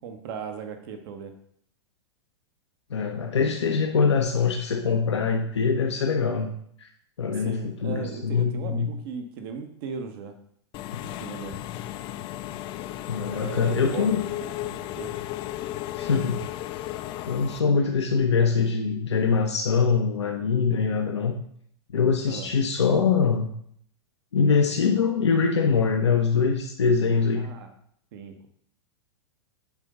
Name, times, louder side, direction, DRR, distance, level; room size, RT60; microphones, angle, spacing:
voice 1, 0.0-1.3 7.3-10.4 11.2-11.6 13.3-14.1 14.4-15.2 22.3-22.5 27.4-27.7 28.1-28.5, right 6 dB, 60° right, 7 dB, 1.1 m, -37 dB
voice 2, 2.9-6.5 6.8-6.9 7.2-8.9 10.9-11.0 13.1-14.2 15.9-16.4 17.3-21.3 21.9-23.5 24.3-27.5, left 5 dB, 85° left, 2 dB, 0.8 m, -23 dB
Engine / Mechanisms, 10.7-17.6, left 13 dB, 35° left, 0.4 m, -35 dB
7.3 x 3.7 x 5.4 m, 0.65 s
hypercardioid pair, 105°, 14 cm